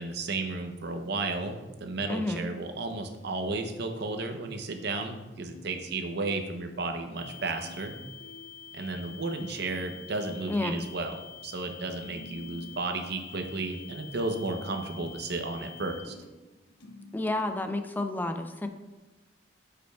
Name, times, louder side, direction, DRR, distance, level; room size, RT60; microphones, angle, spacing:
voice 1, 0.0-8.0 8.7-16.1, right 3 dB, 65° right, 5 dB, 0.7 m, -33 dB
voice 2, 2.1-2.4 10.5-10.8 17.1-18.7, left 2 dB, 10° left, 7 dB, 0.4 m, -30 dB
sound 1, 2.9-3.0 3.4-3.7 4.0-11.6 11.8-17.9, left 2 dB, 75° left, 0.7 m, -53 dB
sound 2, 7.1-16.0, left 7 dB, 15° right, 1.5 m, -47 dB
8.6 x 5.1 x 2.3 m, 1.1 s
head